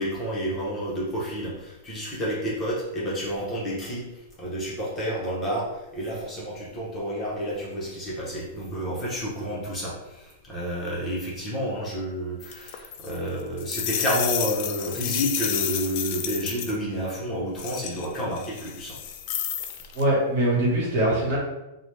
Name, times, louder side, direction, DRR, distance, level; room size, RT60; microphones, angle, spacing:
voice 1, 0.0-19.0, equal, 15° left, -6 dB, 0.8 m, -30 dB
sound 1, 12.4-16.8 17.6-20.0, left 9 dB, 45° left, 0.3 m, -31 dB
voice 2, 19.9-21.4, right 1 dB, 45° right, -4 dB, 1.2 m, -22 dB
2.9 x 2.1 x 3.2 m, 0.97 s
supercardioid pair, 155°, 0 cm